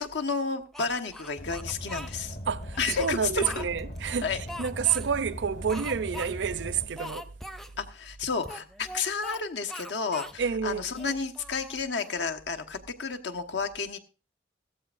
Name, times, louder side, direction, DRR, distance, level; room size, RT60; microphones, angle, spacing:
voice 1, 0.0-2.4 2.8-3.7 4.2-4.4 7.8-14.0, left 4 dB, 80° left, 1.3 m, -31 dB
Speech, 0.7-2.1 2.7-4.0 4.5-5.1 5.7-6.3 6.6-6.7 7.0-7.7 8.4-9.4 9.7-10.4 10.9-12.2, equal, ahead, 0.5 m, -41 dB
Car, 1.4-6.9, equal, 60° left, 1.6 m, -40 dB
voice 2, 2.5-4.3 4.6-7.3 10.4-10.9, right 7 dB, 80° right, 0.5 m, -29 dB
16.0 x 14.5 x 2.5 m
head